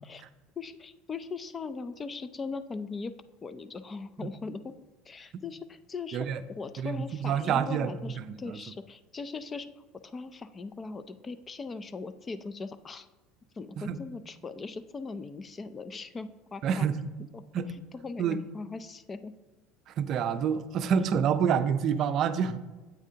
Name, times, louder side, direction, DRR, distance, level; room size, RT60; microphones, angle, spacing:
voice 1, 0.6-4.7 5.1-9.7 10.0-13.1 13.6-16.9 17.3-17.4 17.9-19.3, left 4 dB, 25° left, 12 dB, 0.4 m, -39 dB
voice 2, 6.8-8.6 13.8-14.0 16.6-17.0 17.5-17.7 18.2-18.4 19.9-22.6, right 7 dB, 45° right, 11 dB, 0.5 m, -28 dB
8.7 x 8.3 x 2.8 m, 1.2 s
cardioid pair, 130°, 0 cm